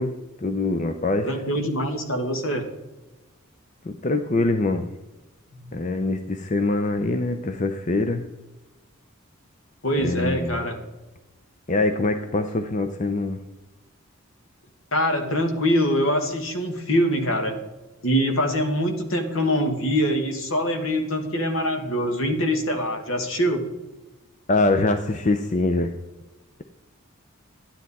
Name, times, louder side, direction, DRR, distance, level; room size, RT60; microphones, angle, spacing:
voice 1, 0.0-1.4 3.8-4.9 5.7-8.3 10.0-10.6 11.7-13.4 24.5-25.9, left 2 dB, 35° left, 8 dB, 0.6 m, -24 dB
voice 2, 1.2-2.7 5.6-5.8 9.8-10.8 14.9-17.6 18.0-23.7, equal, 70° left, 5 dB, 1.7 m, -24 dB
12.0 x 9.7 x 4.1 m, 1.1 s
head